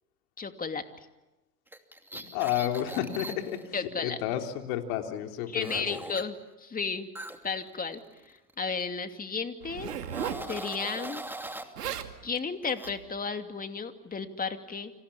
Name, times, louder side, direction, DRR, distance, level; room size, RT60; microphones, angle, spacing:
voice 1, 0.4-1.1 3.7-4.2 5.5-7.1 7.4-9.9 10.4-11.2 12.2-14.9, left 5 dB, 20° left, 7 dB, 2.7 m, -34 dB
sound 1, 1.7-3.7 5.6-6.2 7.1-8.5 8.8-9.0 9.9-11.7 12.6-12.9, right 1 dB, 5° right, 2.7 m, -41 dB
voice 2, 2.1-3.7 4.0-5.8, left 11 dB, 65° left, 4 dB, 3.7 m, -31 dB
Zipper (clothing), 9.6-10.5 11.5-11.6 11.8-12.1 12.8-13.1, right 9 dB, 85° right, 2.5 m, -35 dB
30.0 x 26.5 x 7.2 m, 1.0 s
hypercardioid pair, 90°, 46 cm